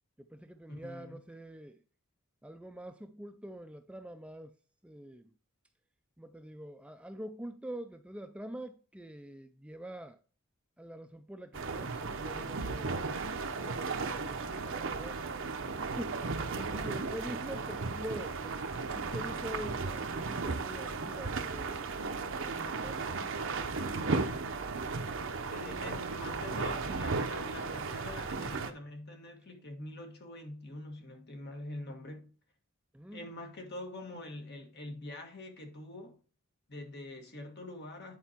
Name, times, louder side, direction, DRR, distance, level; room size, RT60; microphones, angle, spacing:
voice 1, 0.2-1.8 2.4-4.6 4.8-5.3 6.2-10.2 10.8-13.1 13.6-15.3 15.9-16.2 16.6-21.9 22.4-23.2 25.6-26.0 32.9-33.3, right 1 dB, 5° right, 0.3 m, -45 dB
voice 2, 0.7-1.2 24.3-24.5 25.5-32.3 33.1-36.2 36.7-38.2, left 1 dB, 50° left, 1.6 m, -45 dB
sound 1, 11.5-28.7, right 4 dB, 65° right, 0.8 m, -35 dB
9.5 x 4.5 x 4.3 m
head